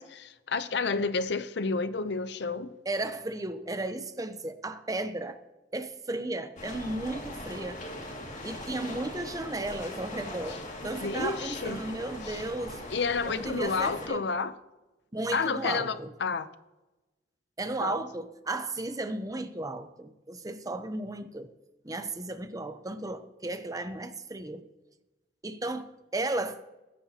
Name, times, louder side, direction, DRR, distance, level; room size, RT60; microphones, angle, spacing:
voice 1, 0.0-2.7 11.0-11.8 12.3-12.4 12.9-14.5 15.3-16.5 17.8-18.0, left 4 dB, 65° left, 0.7 m, -30 dB
voice 2, 2.8-5.4 5.7-7.8 8.4-12.8 13.2-14.3 15.1-16.1 17.6-21.5 21.8-24.6 25.4-26.6, right 2 dB, 20° right, 0.7 m, -34 dB
sound 1, 6.6-14.1, left 1 dB, 40° left, 2.3 m, -40 dB
21.0 x 9.8 x 2.9 m
head